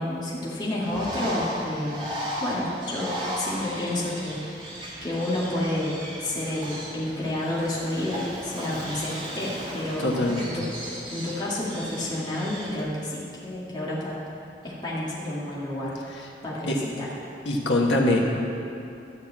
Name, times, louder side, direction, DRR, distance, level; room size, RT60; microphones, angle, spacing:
voice 1, 0.0-2.0 2.4-4.4 5.0-10.7 11.1-14.2 14.6-15.9 16.4-17.1, left 1 dB, 25° left, -7 dB, 2.0 m, -30 dB
Bird, 0.8-12.8, equal, 30° right, 1.9 m, -36 dB
voice 2, 10.0-10.5 16.7-16.8 17.4-18.2, left 1 dB, 85° left, -1 dB, 1.5 m, -23 dB
12.5 x 4.6 x 8.5 m, 2.7 s
head